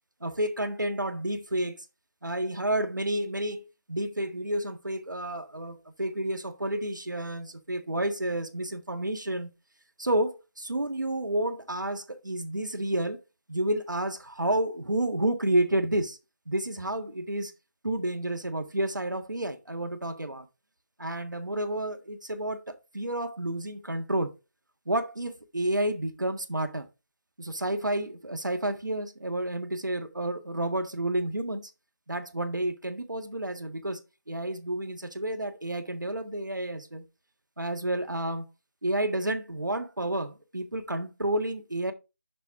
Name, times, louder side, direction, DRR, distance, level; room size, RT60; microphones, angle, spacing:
voice 1, 0.2-1.8 2.2-9.5 10.0-13.2 13.5-16.2 16.5-17.5 17.8-20.5 21.0-24.3 24.9-26.9 27.4-31.7 32.1-34.0 34.3-37.0 37.6-38.4 38.8-41.9, right 1 dB, 85° right, 1.5 m, -30 dB
7.0 x 6.2 x 3.6 m
figure-of-eight pair, 160°, 10 cm